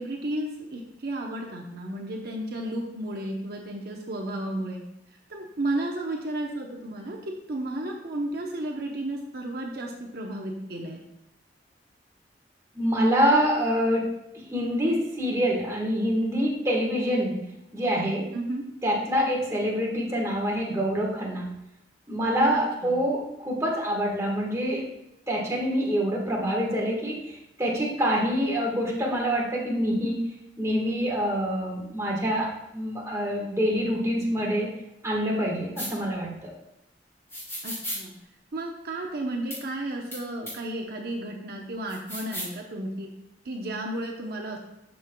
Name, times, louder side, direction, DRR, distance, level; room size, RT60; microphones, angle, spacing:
voice 1, 0.0-4.8 5.3-11.0 18.3-18.6 22.5-23.0 37.6-38.1 38.5-43.1 43.4-44.6, right 1 dB, 60° right, 0 dB, 0.8 m, -33 dB
voice 2, 12.7-17.4 17.7-18.3 18.8-21.5 22.1-24.8 25.3-27.3 27.6-30.2 30.6-34.7 35.0-36.5, equal, 15° right, -2 dB, 1.5 m, -26 dB
sound 1, 35.8-35.9 37.3-38.0 39.5-39.6 40.1-40.2 40.5-40.6 41.9-42.5, equal, 15° left, 2.9 m, -34 dB
12.0 x 5.4 x 2.3 m, 0.85 s
head